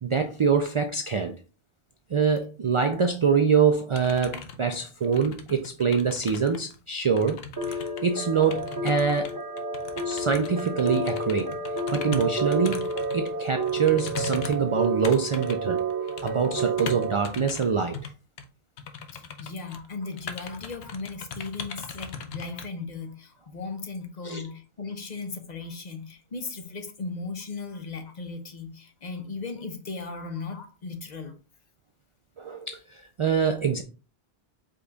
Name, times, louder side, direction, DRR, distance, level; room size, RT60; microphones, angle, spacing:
voice 1, 0.0-1.3 2.1-9.4 10.0-11.5 11.9-12.9 13.1-15.8 16.2-18.0 24.2-24.4 32.4-33.8, right 6 dB, 60° right, 0.3 m, -25 dB
sound 1, 3.9-6.8 7.0-13.3 13.6-17.7 17.9-18.1 18.4-18.5 18.8-19.9 20.1-22.6, left 5 dB, 75° left, 0.9 m, -39 dB
sound 2, 7.6-17.2, right 2 dB, 20° right, 0.7 m, -30 dB
voice 2, 19.1-31.3, left 4 dB, 45° left, 0.8 m, -37 dB
5.1 x 2.4 x 3.9 m
omnidirectional pair, 1.1 m